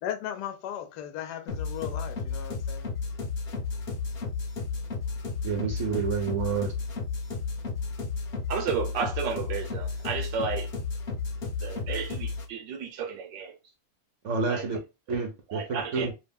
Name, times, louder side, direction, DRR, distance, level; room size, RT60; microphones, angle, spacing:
voice 1, 0.0-3.0, left 10 dB, 70° left, 1.1 m, -36 dB
sound 1, 1.5-12.5, left 4 dB, 45° left, 0.8 m, -33 dB
voice 2, 5.4-6.7 14.2-14.8 15.1-16.1, right 5 dB, 60° right, 0.8 m, -29 dB
voice 3, 8.5-10.7 11.6-13.6 14.5-14.7 15.1-16.1, right 6 dB, 75° right, 1.3 m, -33 dB
3.3 x 2.2 x 3.5 m
omnidirectional pair, 2.0 m